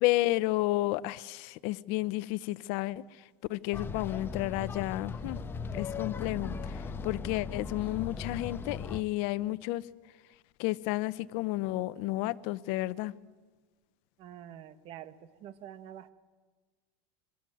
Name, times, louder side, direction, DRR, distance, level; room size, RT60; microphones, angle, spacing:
voice 1, 0.0-3.0 3.5-5.4 5.7-9.8 10.6-13.1, left 18 dB, 60° left, 15 dB, 0.9 m, -31 dB
sound 1, 3.7-9.0, left 5 dB, 20° left, 1.1 m, -38 dB
voice 2, 14.2-16.1, right 10 dB, 50° right, 12 dB, 1.7 m, -47 dB
26.5 x 23.5 x 7.9 m, 1.4 s
supercardioid pair, 130°, 12 cm